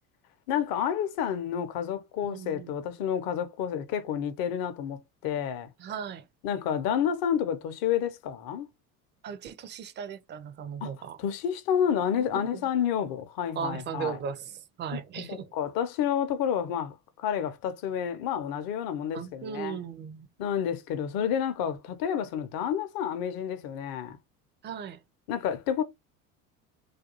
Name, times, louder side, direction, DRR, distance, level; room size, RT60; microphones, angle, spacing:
voice 1, 0.5-5.7 6.4-8.7 10.8-10.9 11.2-14.2 14.9-19.8 20.4-24.2 25.3-25.8, left 9 dB, 55° left, 0.6 m, -30 dB
voice 2, 2.3-2.8 5.8-6.2 9.2-11.2 12.3-12.5 13.6-15.5 19.1-20.3 24.6-25.0, right 7 dB, 25° right, 0.4 m, -37 dB
2.4 x 2.2 x 2.8 m
hypercardioid pair, 70°, 44 cm